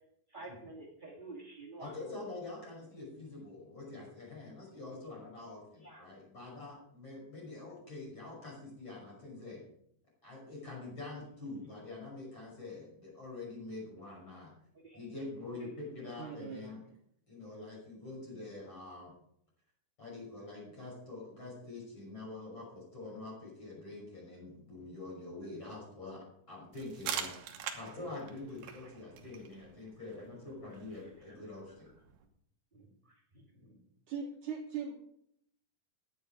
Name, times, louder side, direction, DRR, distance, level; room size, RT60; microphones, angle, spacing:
voice 1, 0.3-1.9 5.8-6.1 14.8-15.0 15.5-15.7 16.0-16.1 16.6-16.8 31.3-31.4 32.7-33.8, right 2 dB, 40° right, -3 dB, 0.7 m, -50 dB
voice 2, 1.8-9.6 10.2-14.5 14.9-16.8 17.3-19.1 20.0-26.2 26.5-27.3 27.7-31.9, left 2 dB, 25° left, -4 dB, 6.1 m, -45 dB
voice 3, 16.2-16.8 34.1-34.9, right 6 dB, 85° right, 0 dB, 1.7 m, -40 dB
sound 1, 26.7-32.3, right 8 dB, 70° right, 2.1 m, -44 dB
11.0 x 9.8 x 4.9 m, 0.71 s
omnidirectional pair, 5.2 m